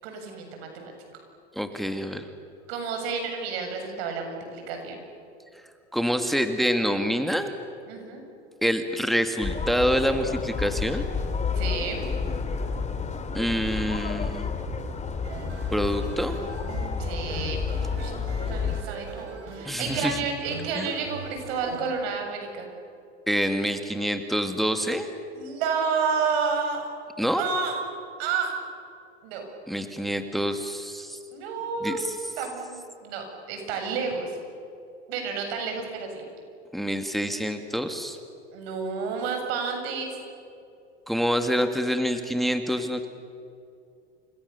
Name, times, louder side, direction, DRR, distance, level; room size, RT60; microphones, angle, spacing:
voice 1, 0.0-1.2 2.7-5.0 7.9-8.2 11.6-12.0 17.0-17.6 17.9-22.7 25.3-26.9 27.4-27.8 28.2-28.5 29.2-29.5 31.3-32.0 32.4-34.4 35.1-36.2 38.5-40.2, right 5 dB, 65° right, 4 dB, 7.6 m, -30 dB
voice 2, 1.6-2.3 5.9-7.5 8.6-11.0 13.3-14.5 15.7-16.4 19.6-20.2 20.8-20.9 23.3-25.1 27.2-27.4 29.7-31.2 31.8-32.2 36.7-38.2 41.1-43.1, equal, ahead, 7 dB, 2.0 m, -26 dB
sound 1, 9.4-18.8, left 5 dB, 20° left, 3.1 m, -30 dB
sound 2, 15.2-21.9, right 4 dB, 80° right, 7.2 m, -40 dB
30.0 x 27.0 x 7.0 m, 2.5 s
hypercardioid pair, 95°, 33 cm